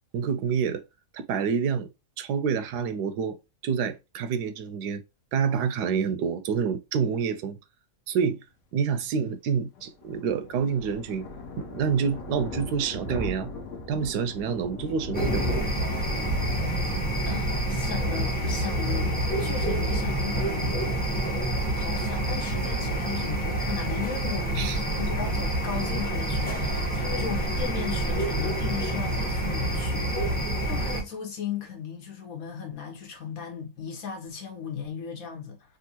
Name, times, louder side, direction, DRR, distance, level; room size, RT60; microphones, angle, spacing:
voice 1, 0.1-0.8 1.1-1.9 2.2-3.4 3.6-5.0 5.3-7.6 8.1-8.4 8.7-11.2 11.6-13.5 13.9-15.7 24.6-24.8, right 6 dB, 80° right, 1.1 m, -27 dB
Thunder, 9.7-19.1 19.5-19.7 20.0-20.1 20.3-20.4, left 2 dB, 80° left, 1.4 m, -37 dB
sound 1, 15.1-31.0, right 1 dB, 5° left, 0.8 m, -27 dB
voice 2, 17.3-20.7 21.7-30.2 30.7-35.8, left 7 dB, 60° left, 1.3 m, -36 dB
3.5 x 2.5 x 2.7 m
omnidirectional pair, 1.7 m